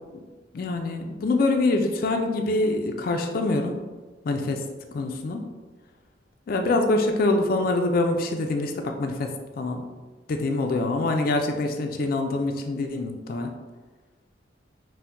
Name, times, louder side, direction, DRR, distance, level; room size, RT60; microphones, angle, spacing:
voice 1, 0.5-3.8 4.2-4.6 4.9-5.5 6.5-9.8 10.3-13.5, left 2 dB, 50° left, 4 dB, 0.3 m, -25 dB
4.3 x 2.1 x 2.5 m, 1.3 s
head